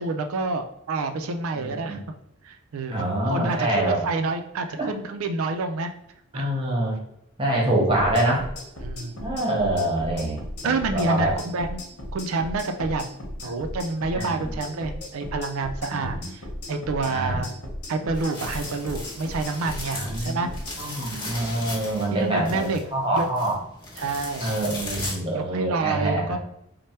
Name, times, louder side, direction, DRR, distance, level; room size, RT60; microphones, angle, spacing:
voice 1, 0.0-2.0 2.4-2.9 3.2-5.9 6.3-6.4 8.8-9.3 10.6-11.8 12.1-13.0 13.4-16.4 16.7-17.5 17.9-20.5 22.1-22.8 23.1-23.3 24.0-24.5 25.3-26.4, right 3 dB, 70° right, 7 dB, 0.4 m, -28 dB
voice 2, 1.5-2.0 2.9-4.0 4.8-4.9 6.3-7.0 7.4-8.4 9.2-10.4 10.6-11.3 14.1-14.5 15.9-16.2 17.0-17.4 19.9-20.5 20.8-23.6 24.4-26.4, right 1 dB, 25° right, -3 dB, 0.9 m, -25 dB
sound 1, 8.0-20.8, left 1 dB, 85° left, 1.0 m, -36 dB
sound 2, 18.1-25.1, left 2 dB, 20° left, 0.8 m, -37 dB
3.3 x 2.1 x 4.2 m, 0.79 s
head